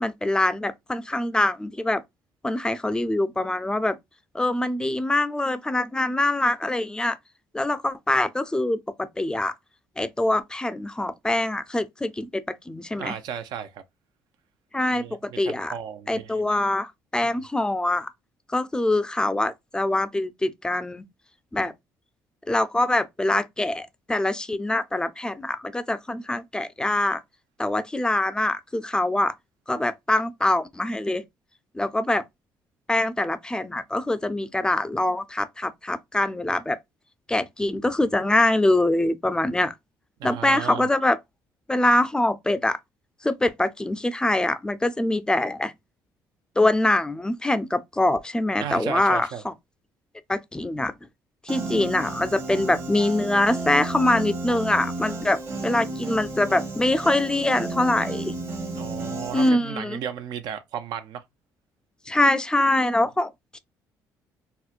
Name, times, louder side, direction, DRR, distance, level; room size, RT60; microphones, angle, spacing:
voice 1, 0.0-2.0 2.4-4.0 4.3-7.2 7.5-9.5 10.0-13.1 14.7-15.7 16.1-18.1 18.5-21.0 21.5-21.7 22.5-27.2 27.6-29.3 29.7-31.2 31.7-32.2 32.9-36.8 37.3-39.7 40.2-41.2 41.7-42.8 43.2-45.7 46.6-49.5 50.3-50.9 51.5-58.3 59.3-60.0 62.1-63.6, left 1 dB, 10° left, 0.4 m, -24 dB
voice 2, 13.0-13.8 14.9-16.4 17.2-17.3 40.2-40.9 48.6-49.4 58.7-61.2, right 9 dB, 75° right, 0.5 m, -34 dB
Piano, 51.5-59.5, right 2 dB, 40° right, 0.9 m, -32 dB
4.2 x 2.1 x 2.4 m
cardioid pair, 95°, 7 cm